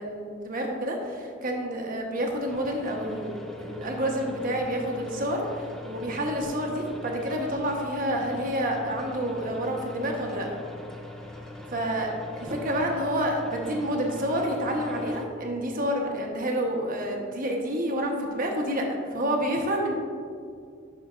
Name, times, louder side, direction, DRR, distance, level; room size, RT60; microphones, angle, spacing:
voice 1, 0.0-10.6 11.7-12.1 12.4-19.9, equal, 45° right, 1 dB, 1.1 m, -29 dB
sound 1, 2.5-15.3, left 1 dB, ahead, 0.6 m, -42 dB
12.0 x 4.9 x 2.5 m, 2.3 s
head